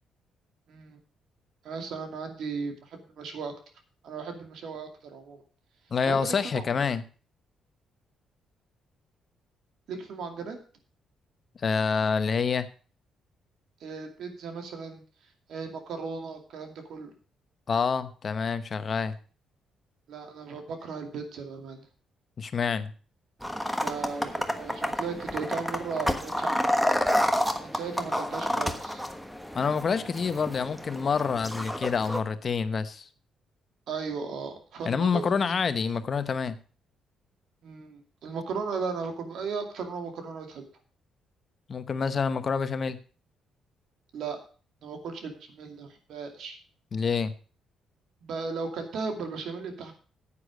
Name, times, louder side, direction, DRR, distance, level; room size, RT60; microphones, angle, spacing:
voice 1, 0.7-1.0 1.6-3.5 4.0-5.4 6.1-6.6 9.9-10.6 13.8-15.0 15.5-17.1 20.1-21.8 23.8-26.9 27.5-29.0 33.9-35.5 37.6-40.6 44.1-44.4 44.8-46.6 48.2-49.9, right 5 dB, 70° right, 5 dB, 2.5 m, -36 dB
voice 2, 5.9-7.0 11.6-12.7 17.7-19.2 22.4-22.9 29.5-33.1 34.8-36.6 41.7-43.0 46.9-47.3, left 5 dB, 45° left, 11 dB, 0.9 m, -27 dB
sound 1, 23.4-32.2, equal, ahead, 1.3 m, -30 dB
9.7 x 8.6 x 5.1 m, 0.39 s
cardioid pair, 90°, 0 cm